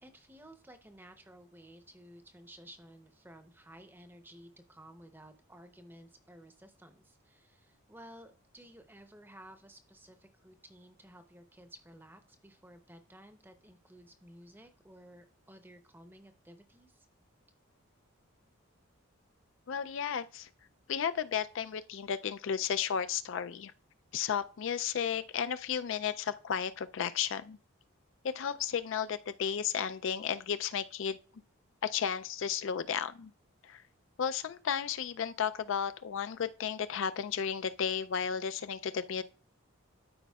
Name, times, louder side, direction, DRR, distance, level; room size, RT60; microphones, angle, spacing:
voice 1, 0.0-17.1, right 1 dB, 10° right, 0.7 m, -55 dB
voice 2, 19.7-20.5 20.9-23.7 24.1-27.6 28.2-31.2 31.8-33.3 33.6-33.8 34.2-39.2, left 8 dB, 60° left, 0.4 m, -33 dB
12.5 x 5.0 x 2.3 m
head